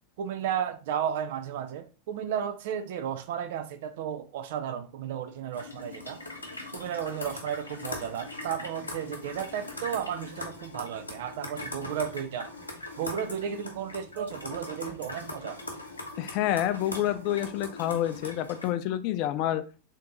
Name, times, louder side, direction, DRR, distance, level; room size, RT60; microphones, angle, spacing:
voice 1, 0.2-6.2 6.7-12.5 13.0-15.6, right 9 dB, 55° right, 0.4 m, -33 dB
sound 1, 5.5-18.7, left 2 dB, 80° left, 0.9 m, -41 dB
voice 2, 16.2-19.6, left 12 dB, 40° left, 0.3 m, -28 dB
3.6 x 2.8 x 3.7 m
figure-of-eight pair, 90°, 0 cm